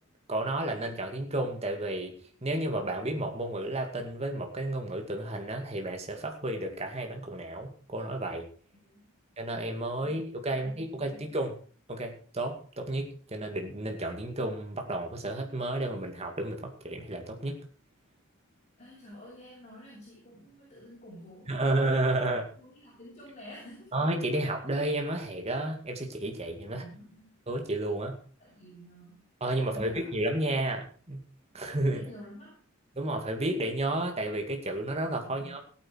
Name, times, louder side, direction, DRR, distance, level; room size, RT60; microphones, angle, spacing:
voice 1, 0.3-2.1 2.4-8.4 9.4-11.6 11.9-17.6 21.5-22.5 23.9-26.8 27.5-28.2 29.4-31.2 31.5-32.0 33.0-35.6, right 1 dB, 30° right, 3 dB, 2.3 m, -31 dB
voice 2, 10.5-11.3 18.8-22.3 22.6-23.9 26.7-27.3 28.4-29.3 29.6-30.1 31.8-32.6 35.2-35.6, equal, 30° left, -6 dB, 6.9 m, -49 dB
16.0 x 9.3 x 4.7 m, 0.41 s
head